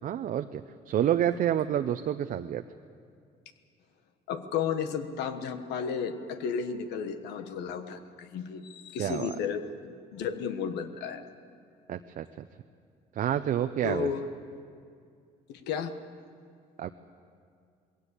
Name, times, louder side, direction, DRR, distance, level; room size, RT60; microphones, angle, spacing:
voice 1, 0.0-2.6 9.0-9.3 11.9-12.5 13.1-14.1 16.8-16.9, right 10 dB, 55° right, 8 dB, 0.6 m, -29 dB
voice 2, 4.3-11.2 13.8-14.3 15.5-15.9, left 6 dB, 85° left, 9 dB, 1.4 m, -33 dB
20.5 x 17.0 x 8.3 m, 2.3 s
cardioid pair, 110°, 17 cm